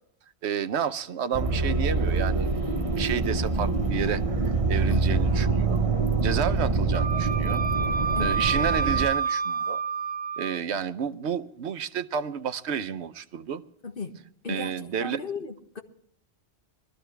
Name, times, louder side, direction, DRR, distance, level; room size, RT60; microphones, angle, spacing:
voice 1, 0.4-5.8 6.2-7.6 8.2-9.8 10.4-13.6 14.5-15.2, right 7 dB, 75° right, 1.1 m, -31 dB
sound 1, 1.3-9.1, right 3 dB, 30° right, 1.2 m, -25 dB
voice 2, 4.9-5.2 8.2-8.4 13.8-14.1 14.4-15.8, left 4 dB, 55° left, 1.8 m, -36 dB
Wind instrument woodwind instrument, 6.9-10.6, right 5 dB, 10° left, 0.8 m, -28 dB
21.5 x 14.0 x 3.4 m
omnidirectional pair, 1.1 m